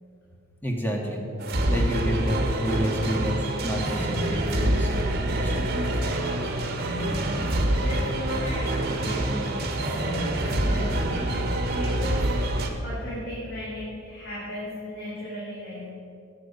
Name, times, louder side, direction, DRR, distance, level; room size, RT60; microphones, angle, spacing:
voice 1, 0.6-1.2 1.7-4.9 5.3-5.7, equal, 10° left, 1 dB, 1.7 m, -29 dB
sound 1, 1.4-12.7, right 1 dB, 50° right, 1.4 m, -26 dB
voice 2, 7.7-12.2 12.8-15.9, left 1 dB, 55° left, -8 dB, 3.8 m, -36 dB
18.5 x 8.5 x 5.5 m, 2.6 s
head